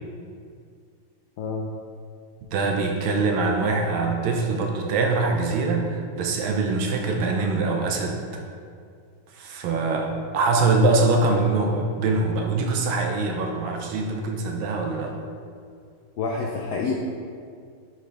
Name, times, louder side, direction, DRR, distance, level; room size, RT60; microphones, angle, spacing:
voice 1, 1.4-1.7 16.2-16.9, left 4 dB, 80° left, -1 dB, 0.9 m, -27 dB
voice 2, 2.5-8.4 9.3-15.1, right 3 dB, 75° right, 2 dB, 1.4 m, -23 dB
9.0 x 3.8 x 3.3 m, 2.2 s
omnidirectional pair, 2.4 m